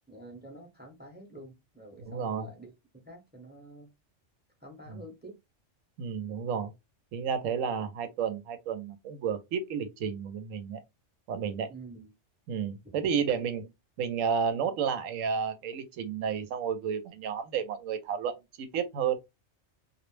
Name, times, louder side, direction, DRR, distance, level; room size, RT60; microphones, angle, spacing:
voice 1, 0.1-3.9 4.6-5.4 11.6-12.1, right 1 dB, 10° right, 0.6 m, -48 dB
voice 2, 2.1-2.5 4.9-5.0 6.0-6.7 7.1-10.8 11.3-11.7 12.5-13.7 14.0-19.2, right 7 dB, 90° right, 1.0 m, -31 dB
2.4 x 2.0 x 3.1 m
omnidirectional pair, 1.3 m